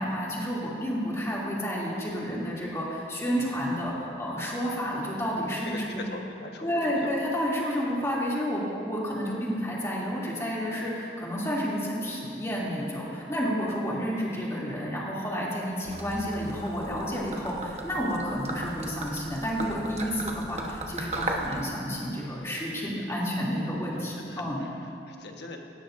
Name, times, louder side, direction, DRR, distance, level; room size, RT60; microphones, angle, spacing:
voice 1, 0.0-5.8 6.6-24.6, equal, 15° left, -6 dB, 2.8 m, -30 dB
voice 2, 5.6-7.1 23.9-25.6, left 2 dB, 65° left, 2 dB, 1.4 m, -42 dB
Gurgling / Liquid, 15.8-21.6, right 2 dB, 35° right, 1.2 m, -36 dB
18.5 x 16.5 x 2.6 m, 2.7 s
head